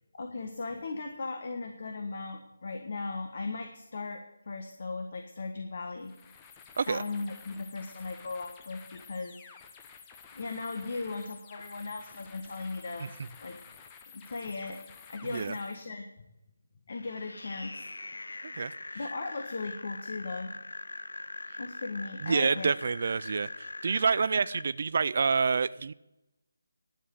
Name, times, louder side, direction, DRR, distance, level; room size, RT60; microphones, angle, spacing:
voice 1, 0.1-6.1 6.9-9.4 10.3-13.6 14.1-14.8 15.1-16.0 16.9-17.8 18.9-20.5 21.6-22.7, left 3 dB, 50° left, 4 dB, 1.4 m, -37 dB
sound 1, 6.0-15.9, left 6 dB, 15° left, 0.9 m, -52 dB
sound 2, 16.9-24.6, left 2 dB, 85° left, 0.7 m, -42 dB
voice 2, 22.2-25.9, right 5 dB, 50° right, 15 dB, 0.4 m, -27 dB
11.0 x 7.1 x 9.2 m, 0.91 s
figure-of-eight pair, 165°, 0 cm